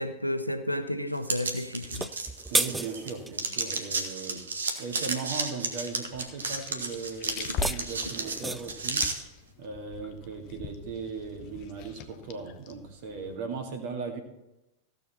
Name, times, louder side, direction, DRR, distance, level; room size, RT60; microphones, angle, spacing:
voice 1, 0.0-2.1, left 1 dB, 90° left, 8 dB, 0.8 m, -31 dB
sound 1, 1.2-3.1 3.3-9.1, right 4 dB, 70° right, 1.4 m, -32 dB
sound 2, 1.8-3.4 7.3-8.8, right 2 dB, 5° right, 0.4 m, -32 dB
voice 2, 2.5-4.4 4.8-9.1 9.6-14.2, right 5 dB, 50° right, 4 dB, 2.1 m, -38 dB
sound 3, 6.0-13.4, left 5 dB, 40° left, 0.8 m, -41 dB
15.5 x 6.9 x 4.2 m, 0.94 s
figure-of-eight pair, 90°, 0 cm